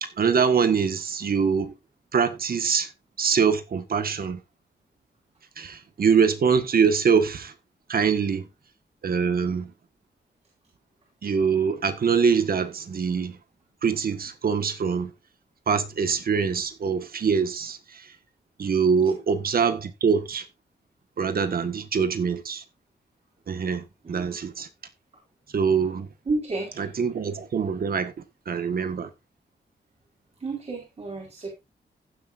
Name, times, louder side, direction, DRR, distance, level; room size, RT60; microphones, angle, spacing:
voice 1, 0.0-1.7 2.1-2.9 3.2-4.4 5.6-7.5 7.9-8.5 9.0-9.7 11.2-13.4 13.8-15.1 15.7-18.1 18.6-20.4 21.2-22.6 23.5-24.7 25.5-26.1 26.8-28.1 28.4-29.1, right 6 dB, 55° right, 1.6 m, -24 dB
voice 2, 26.3-26.9 30.4-31.5, right 3 dB, 35° right, 4.5 m, -31 dB
16.5 x 7.8 x 2.6 m
wide cardioid pair, 140°, 18 cm